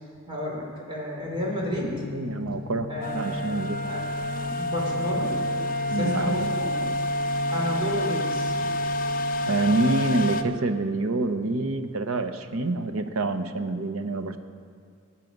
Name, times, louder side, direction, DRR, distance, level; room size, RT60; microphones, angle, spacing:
voice 1, 0.3-2.0 2.4-2.6 2.9-3.5 3.8-4.1 4.5-5.3 5.9-6.7 7.5-8.5, equal, 25° right, -3 dB, 3.4 m, -31 dB
sound 1, 1.3-10.7, left 3 dB, 65° left, 1.1 m, -36 dB
voice 2, 2.1-2.9 3.1-3.8 5.9-6.5 6.8-7.0 9.4-14.4, right 2 dB, 85° right, 8 dB, 0.9 m, -27 dB
sound 2, 3.0-10.4, left 1 dB, 45° left, 0.7 m, -28 dB
19.5 x 9.1 x 5.3 m, 2.3 s
head